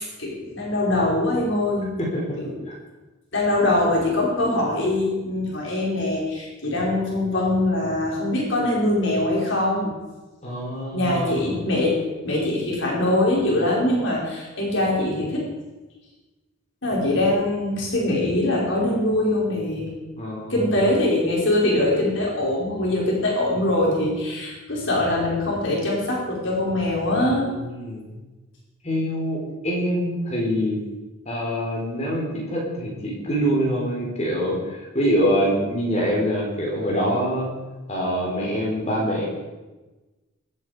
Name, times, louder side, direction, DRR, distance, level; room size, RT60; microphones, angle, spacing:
voice 1, 0.2-1.9 2.4-2.5 3.3-9.9 10.9-12.0 12.2-15.5 16.8-19.9 20.5-27.5, left 1 dB, 65° left, -4 dB, 4.7 m, -22 dB
voice 2, 10.4-11.6 20.2-20.6 27.1-28.2 28.8-30.8 31.3-37.5 37.9-39.3, equal, 30° left, -3 dB, 4.1 m, -25 dB
23.0 x 8.7 x 5.0 m, 1.2 s
head